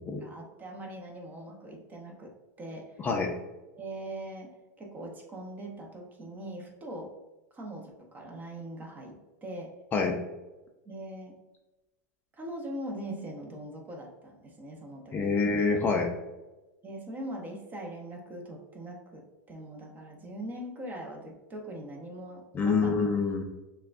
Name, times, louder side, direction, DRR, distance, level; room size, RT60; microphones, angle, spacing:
voice 1, 0.2-3.1 3.8-7.1 7.5-9.7 10.8-11.4 12.3-15.4 16.8-23.1, right 1 dB, 20° right, 1 dB, 0.7 m, -41 dB
voice 2, 3.0-3.3 9.9-10.2 15.1-16.1 22.5-23.4, left 4 dB, 20° left, 2 dB, 0.4 m, -26 dB
5.7 x 2.2 x 2.4 m, 1.1 s
supercardioid pair, 135°, 9 cm